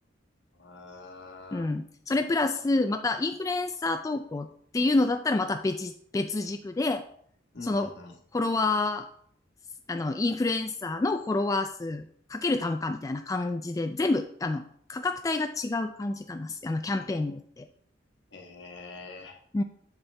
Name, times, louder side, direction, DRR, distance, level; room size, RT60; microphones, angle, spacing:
voice 1, 0.6-1.7 7.5-8.1 18.3-19.4, left 3 dB, 65° left, 1 dB, 1.5 m, -45 dB
voice 2, 1.5-4.5 4.7-7.0 7.6-7.9 8.3-9.1 9.9-14.6 14.9-17.7 19.5-19.6, left 2 dB, 20° left, 7 dB, 0.3 m, -28 dB
7.3 x 6.8 x 3.4 m, 0.64 s
head